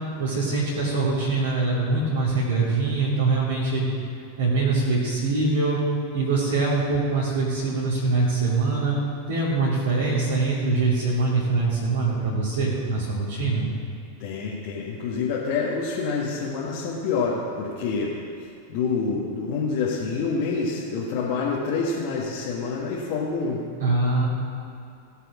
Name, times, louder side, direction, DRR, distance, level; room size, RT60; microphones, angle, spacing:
voice 1, 0.2-3.9 4.4-5.8 6.1-9.0 9.3-13.7 23.8-24.3, right 3 dB, 60° right, -9 dB, 2.8 m, -23 dB
voice 2, 14.2-18.1 18.4-23.6, left 4 dB, 45° left, -5 dB, 1.6 m, -27 dB
17.0 x 6.8 x 6.2 m, 2.6 s
figure-of-eight pair, 90°, 0 cm